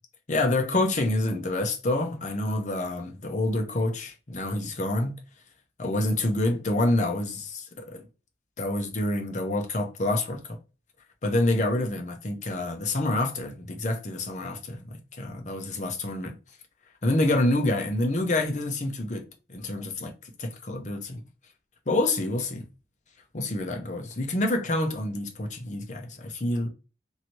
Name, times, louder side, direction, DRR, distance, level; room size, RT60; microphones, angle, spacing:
voice 1, 0.3-5.2 5.8-8.0 8.6-10.6 11.2-16.4 17.0-20.1 20.4-21.2 21.9-22.6 23.3-26.7, left 1 dB, 40° left, 0.7 m, -27 dB
2.9 x 2.6 x 3.0 m
head